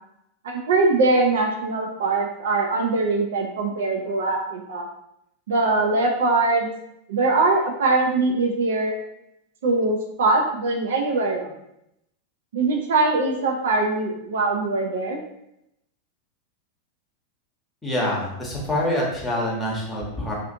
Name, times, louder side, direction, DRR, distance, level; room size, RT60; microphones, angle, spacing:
voice 1, 0.4-4.8 5.5-6.7 7.1-9.0 9.6-11.5 12.5-15.2, right 3 dB, 60° right, 2 dB, 0.4 m, -22 dB
voice 2, 17.8-20.3, left 1 dB, 15° left, -3 dB, 0.8 m, -26 dB
2.4 x 2.4 x 2.5 m, 0.80 s
figure-of-eight pair, 90°, 0 cm